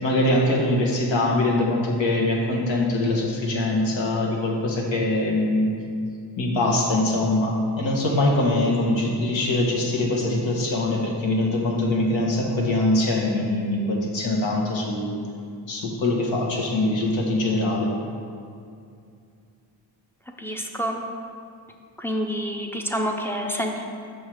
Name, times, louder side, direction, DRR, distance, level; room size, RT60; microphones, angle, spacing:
voice 1, 0.0-5.7 6.4-15.2 15.7-17.9, left 2 dB, 90° left, -1 dB, 1.2 m, -23 dB
voice 2, 20.4-21.0 22.0-23.8, equal, 5° left, 2 dB, 0.3 m, -27 dB
6.3 x 3.3 x 6.0 m, 2.4 s
wide cardioid pair, 160°, 44 cm